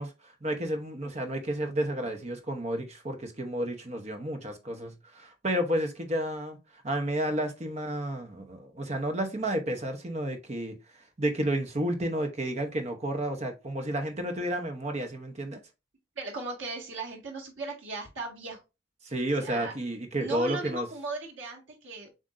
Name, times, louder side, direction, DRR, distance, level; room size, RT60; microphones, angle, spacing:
voice 1, 0.0-6.6 6.8-10.8 11.2-15.6 19.0-20.9, right 1 dB, 35° right, 0.9 m, -31 dB
voice 2, 16.2-18.6 19.4-19.7 20.2-22.1, right 3 dB, 85° right, 1.8 m, -37 dB
7.3 x 2.7 x 2.6 m
head